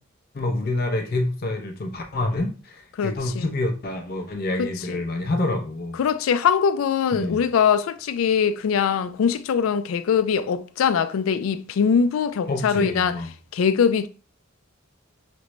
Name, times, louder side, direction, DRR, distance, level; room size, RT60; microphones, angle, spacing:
voice 1, 0.3-2.5 3.0-6.0 7.1-7.4 12.5-13.3, left 2 dB, 50° left, 0.6 m, -27 dB
voice 2, 3.0-3.5 4.6-5.0 5.9-13.2 13.5-14.1, left 7 dB, 85° left, 0.3 m, -22 dB
5.2 x 2.1 x 3.0 m
head